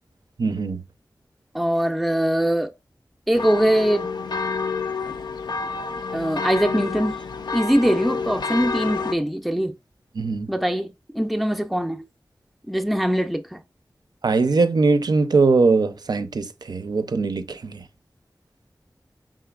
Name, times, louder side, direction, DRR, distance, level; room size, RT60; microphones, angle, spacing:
voice 1, 0.4-0.8 10.2-10.5 14.2-17.8, right 3 dB, 70° right, 0.4 m, -21 dB
voice 2, 1.5-2.7 3.3-4.1 6.1-7.2 7.5-9.7 10.5-12.0 12.7-13.6, equal, ahead, 0.4 m, -22 dB
sound 1, 3.3-9.1, left 4 dB, 85° left, 0.4 m, -28 dB
4.9 x 3.7 x 2.3 m
wide cardioid pair, 60°, 7 cm